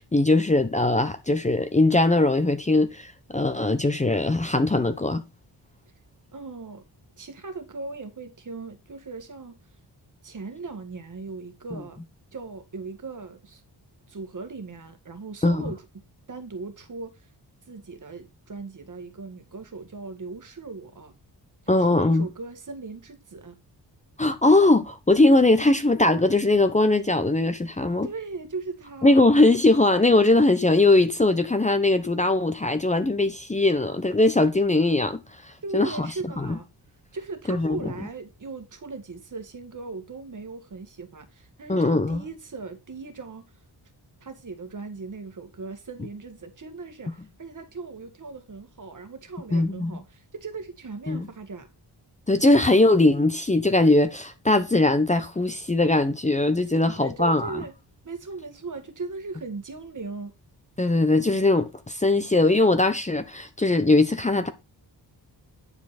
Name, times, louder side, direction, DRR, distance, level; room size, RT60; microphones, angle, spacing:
voice 1, 0.0-5.2 15.4-15.7 21.7-22.3 24.2-28.1 29.0-36.1 36.4-36.6 37.5-37.9 41.7-42.2 49.5-50.0 51.1-51.3 52.3-57.6 60.8-64.5, left 2 dB, 15° left, 0.9 m, -20 dB
voice 2, 6.3-6.8 7.2-9.6 10.2-12.0 12.3-13.6 14.1-15.8 16.3-17.2 17.7-21.1 21.6-23.6 28.0-29.2 35.6-36.7 37.1-43.5 44.2-51.7 56.7-57.7 58.0-60.3, right 4 dB, 45° right, 2.0 m, -38 dB
9.9 x 7.2 x 4.3 m
wide cardioid pair, 135°, 42 cm